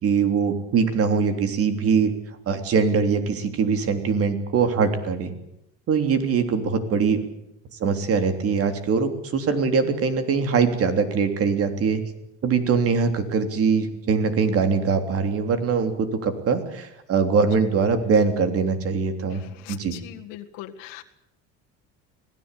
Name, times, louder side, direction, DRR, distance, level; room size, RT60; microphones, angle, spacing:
voice 1, 0.0-2.1 2.5-5.3 5.9-7.2 7.7-12.0 12.4-19.4 19.7-20.0, right 5 dB, 45° right, 8 dB, 3.4 m, -22 dB
voice 2, 19.3-21.0, left 13 dB, 90° left, 4 dB, 1.9 m, -41 dB
25.0 x 18.0 x 8.4 m, 0.84 s
cardioid pair, 135°, 31 cm